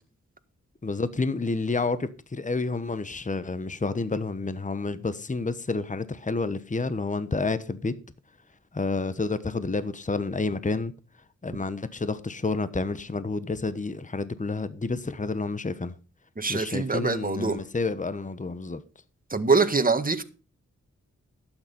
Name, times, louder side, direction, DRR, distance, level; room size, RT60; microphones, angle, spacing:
voice 1, 0.8-7.9 8.7-10.9 11.4-15.9 16.5-18.8, left 3 dB, 25° left, 1.1 m, -29 dB
voice 2, 16.4-17.6 19.3-20.2, right 4 dB, 30° right, 1.7 m, -24 dB
12.0 x 9.1 x 5.5 m
cardioid pair, 50°, 29 cm